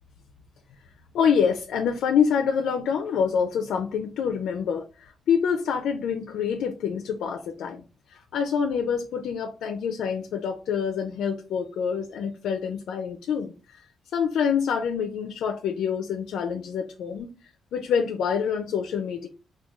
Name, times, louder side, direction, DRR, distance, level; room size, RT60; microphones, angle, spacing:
voice 1, 1.1-7.8 8.1-13.8 14.1-17.3 17.7-19.3, left 7 dB, 80° left, 0.4 m, -26 dB
3.5 x 2.2 x 3.0 m
cardioid pair, 160°, 0 cm